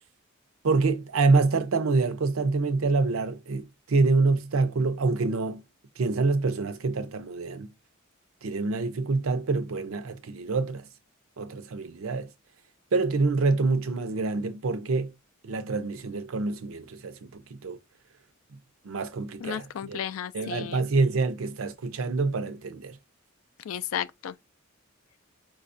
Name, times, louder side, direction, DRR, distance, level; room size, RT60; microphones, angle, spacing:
voice 1, 0.6-5.6 6.0-7.7 8.4-10.8 11.4-12.3 12.9-15.1 15.4-17.8 18.8-20.0 20.3-23.0, right 3 dB, 85° right, 0.5 m, -26 dB
voice 2, 19.4-20.9 23.6-24.3, left 9 dB, 85° left, 0.3 m, -33 dB
4.8 x 2.3 x 2.5 m
head